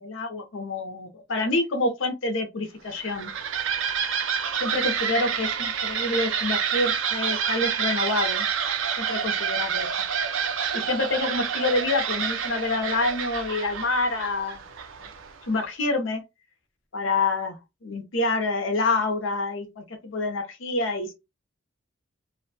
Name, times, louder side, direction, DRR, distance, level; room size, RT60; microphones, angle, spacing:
voice 1, 0.0-3.3 4.6-8.5 9.0-9.9 10.7-14.6 15.4-16.2 16.9-21.1, left 2 dB, 85° left, 0.7 m, -27 dB
sound 1, 2.9-15.4, right 7 dB, 80° right, 0.4 m, -28 dB
2.5 x 2.1 x 2.6 m
head